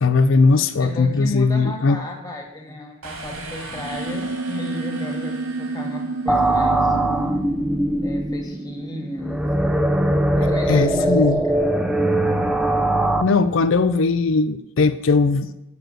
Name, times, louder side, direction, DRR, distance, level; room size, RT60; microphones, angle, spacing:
voice 1, 0.0-2.0 10.7-11.4 13.2-15.5, left 4 dB, 60° left, 0.4 m, -18 dB
voice 2, 0.8-7.0 8.0-9.9 10.4-11.4 11.8-12.0, left 2 dB, 20° left, 1.7 m, -33 dB
sound 1, 3.0-6.8, right 3 dB, 85° right, 2.2 m, -38 dB
sound 2, 3.7-9.7, right 3 dB, 40° right, 0.7 m, -31 dB
sound 3, 6.3-13.2, right 1 dB, 5° right, 0.5 m, -21 dB
7.6 x 7.0 x 7.8 m
head